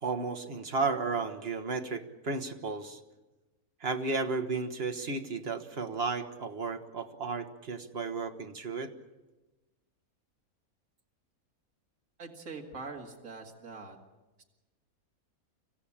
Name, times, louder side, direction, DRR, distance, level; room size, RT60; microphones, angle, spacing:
voice 1, 0.0-3.0 3.8-8.9, right 4 dB, 45° right, 6 dB, 1.6 m, -33 dB
voice 2, 12.2-14.0 14.4-14.5, right 4 dB, 65° right, 1 dB, 2.6 m, -43 dB
26.5 x 15.0 x 8.7 m, 1.1 s
omnidirectional pair, 1.6 m